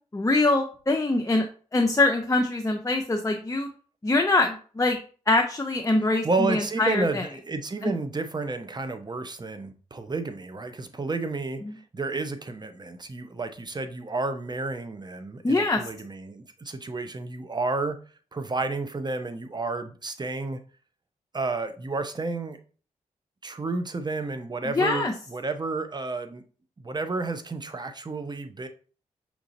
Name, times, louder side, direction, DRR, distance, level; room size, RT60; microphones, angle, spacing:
voice 1, 0.1-1.5 1.7-3.7 4.0-5.0 5.3-7.2 7.8-7.9 11.6-11.7 15.4-15.8 24.6-25.1, left 2 dB, 20° left, 0.6 m, -23 dB
voice 2, 6.2-11.6 11.9-18.0 18.3-20.6 21.3-22.6 23.4-26.4 26.8-28.7, right 3 dB, 30° right, 0.7 m, -31 dB
5.8 x 2.8 x 2.6 m
supercardioid pair, 45°, 14 cm